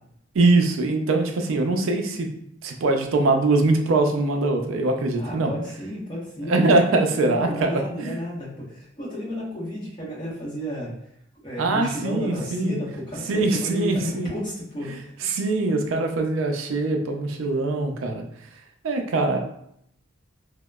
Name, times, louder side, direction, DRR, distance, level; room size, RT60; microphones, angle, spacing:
voice 1, 0.3-2.3 2.6-5.5 6.5-7.7 8.0-8.2 11.6-12.8 13.3-14.3 15.3-18.2 18.8-19.4, right 2 dB, 85° right, 4 dB, 0.4 m, -22 dB
voice 2, 5.2-6.8 7.1-10.9 11.4-15.1, equal, 25° left, -7 dB, 0.8 m, -32 dB
2.8 x 2.0 x 2.2 m, 0.72 s
head